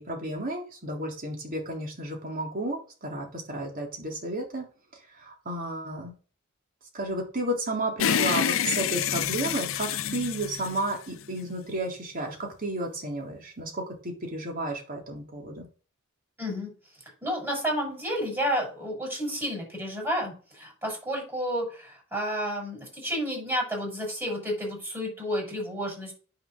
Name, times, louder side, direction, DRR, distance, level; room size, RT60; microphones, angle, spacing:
voice 1, 0.0-4.6 5.2-6.1 6.9-15.7, right 1 dB, 45° right, 0 dB, 3.6 m, -32 dB
sound 1, 8.0-11.5, left 8 dB, 70° left, 0.7 m, -28 dB
voice 2, 16.4-16.7 17.2-26.1, equal, 10° right, -1 dB, 6.7 m, -31 dB
9.6 x 6.9 x 6.6 m, 0.38 s
head